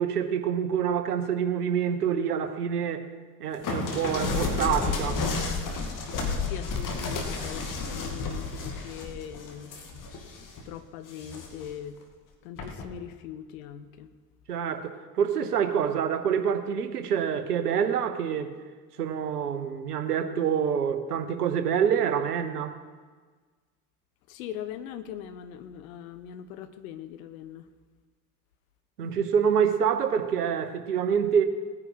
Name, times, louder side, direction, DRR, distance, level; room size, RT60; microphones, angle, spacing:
voice 1, 0.0-3.1 3.4-5.2 14.5-18.5 19.0-22.8 29.0-31.4, right 8 dB, 75° right, 1.1 m, -26 dB
sound 1, 3.6-10.6 11.1-11.7 12.6-12.9, left 4 dB, 40° left, 2.3 m, -31 dB
voice 2, 6.4-9.7 10.6-12.0 12.4-14.1 24.3-27.7, left 10 dB, 60° left, 1.1 m, -41 dB
19.0 x 9.7 x 4.8 m
figure-of-eight pair, 60°, 46 cm